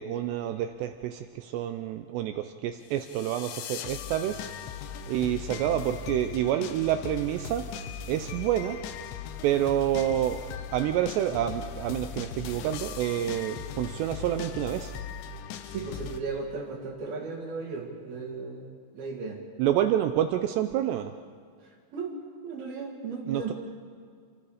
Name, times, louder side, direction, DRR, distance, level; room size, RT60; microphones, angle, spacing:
voice 1, 0.0-4.4 5.1-7.6 8.1-8.8 9.4-10.4 10.7-14.9 19.6-21.1 23.3-23.5, right 11 dB, 80° right, 8 dB, 2.5 m, -28 dB
sound 1, 2.9-16.2, left 7 dB, 75° left, 3.1 m, -39 dB
voice 2, 15.7-19.4 21.9-22.2 22.4-23.5, right 4 dB, 55° right, 0 dB, 3.7 m, -36 dB
30.0 x 24.0 x 5.0 m, 2.1 s
omnidirectional pair, 5.6 m